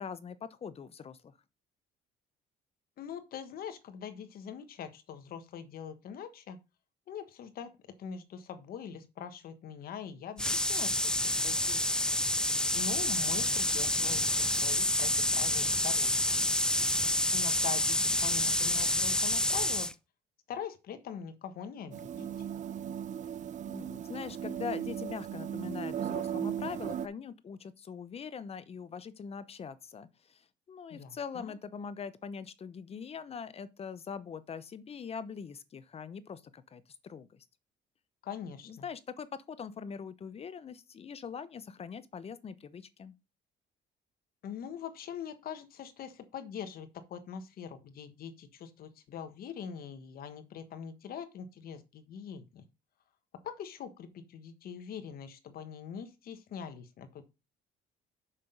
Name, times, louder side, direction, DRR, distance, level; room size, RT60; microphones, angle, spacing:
voice 1, 0.0-1.3 23.7-37.4 38.7-43.1, left 6 dB, 35° left, 0.9 m, -42 dB
voice 2, 3.0-6.6 7.1-11.1 11.4-12.2 12.7-16.3 17.3-19.9 20.5-22.3 30.9-31.5 38.2-38.9 44.4-52.6 53.4-57.2, left 7 dB, 60° left, 1.4 m, -43 dB
sound 1, 10.4-19.9, left 1 dB, 5° left, 0.5 m, -28 dB
sound 2, 21.9-27.1, right 9 dB, 45° right, 0.6 m, -37 dB
6.6 x 5.9 x 5.1 m
cardioid pair, 110°, 17 cm